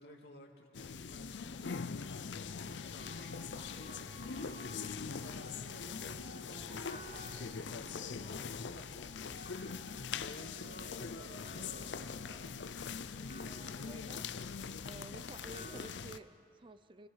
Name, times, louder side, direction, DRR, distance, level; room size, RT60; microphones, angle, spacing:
voice 1, 0.0-2.1 2.5-4.1 5.1-8.9 10.1-12.3, left 1 dB, 65° left, 1 dB, 2.4 m, -54 dB
sound 1, 0.7-16.2, left 5 dB, 90° left, 0.6 m, -42 dB
sound 2, 2.4-15.8, right 2 dB, 50° right, 7.8 m, -55 dB
voice 2, 13.6-14.3 14.8-17.1, right 2 dB, 30° right, 12 dB, 0.6 m, -52 dB
29.5 x 17.5 x 5.7 m, 2.5 s
head